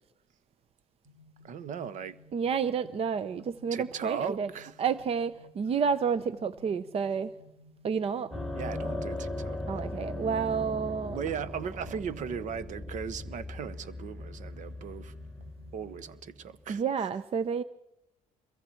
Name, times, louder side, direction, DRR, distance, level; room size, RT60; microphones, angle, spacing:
sound 1, 1.0-16.1, left 1 dB, 25° right, 4.7 m, -57 dB
voice 1, 1.4-2.2 3.7-4.7 8.6-9.6 11.1-15.2 15.7-16.8, right 7 dB, 60° right, 1.2 m, -37 dB
voice 2, 2.3-4.5 4.8-7.3 7.8-8.3 9.7-11.2 16.7-17.6, right 6 dB, 45° right, 0.7 m, -30 dB
sound 2, 8.3-16.6, left 2 dB, ahead, 2.5 m, -39 dB
26.5 x 22.5 x 4.5 m
cardioid pair, 105°, 14 cm